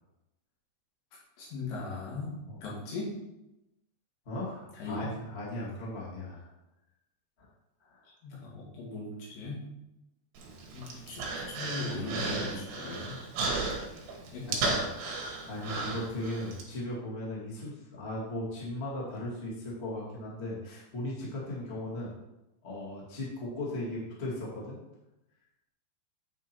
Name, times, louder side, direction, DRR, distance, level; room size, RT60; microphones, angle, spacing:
voice 1, 1.4-3.1 4.7-5.1 8.1-9.6 10.7-13.1 14.3-14.8, left 3 dB, 75° left, -6 dB, 4.3 m, -38 dB
voice 2, 4.2-6.5 7.4-7.5 7.8-8.1 10.8-11.0 13.7-13.9 14.5-14.6 15.4-22.1 22.6-24.8, left 1 dB, 30° left, -5 dB, 1.2 m, -37 dB
Human voice, 10.4-16.6, right 3 dB, 65° right, 2.8 m, -35 dB
8.9 x 4.8 x 4.4 m, 0.94 s
omnidirectional pair, 4.8 m